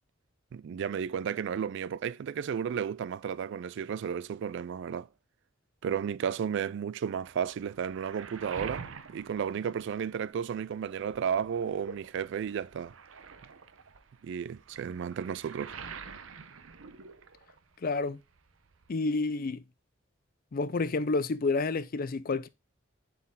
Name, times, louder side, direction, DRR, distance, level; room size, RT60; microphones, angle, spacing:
voice 1, 0.5-5.1 5.8-12.9 14.2-15.7, right 7 dB, 60° right, 0.3 m, -33 dB
Waves surf, 7.3-10.5 10.8-17.7 18.0-18.9, right 5 dB, 85° right, 0.8 m, -47 dB
voice 2, 17.8-18.2 18.9-19.6 20.5-22.5, left 3 dB, 45° left, 0.5 m, -29 dB
7.2 x 4.6 x 3.6 m
head